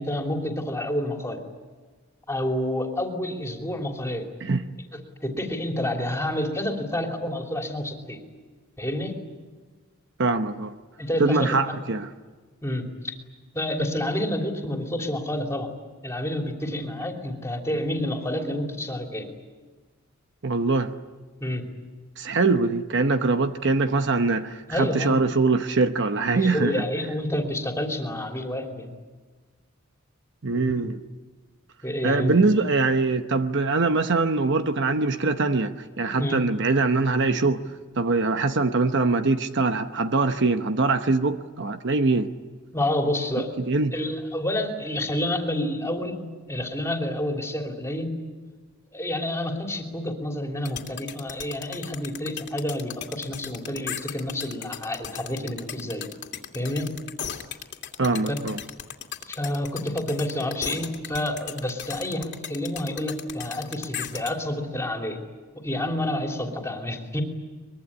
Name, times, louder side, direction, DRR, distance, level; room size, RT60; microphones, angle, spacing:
voice 1, 0.0-1.4 2.3-4.3 5.2-8.2 8.8-9.1 11.0-11.8 12.6-13.1 13.5-15.7 16.0-19.3 21.4-21.6 24.7-25.2 26.3-28.9 30.5-30.7 31.8-32.4 36.2-36.4 42.7-43.5 43.9-48.2 48.9-56.1 56.5-56.9 59.3-65.2 65.6-67.2, left 1 dB, 15° left, 3.0 m, -29 dB
voice 2, 10.2-10.7 11.2-12.1 20.4-20.9 22.2-26.7 30.4-31.0 32.0-37.6 38.0-42.3 43.6-43.9 58.0-58.6, right 3 dB, 55° right, 0.9 m, -23 dB
sound 1, 50.6-64.3, left 9 dB, 55° left, 2.4 m, -36 dB
23.5 x 22.0 x 9.8 m
head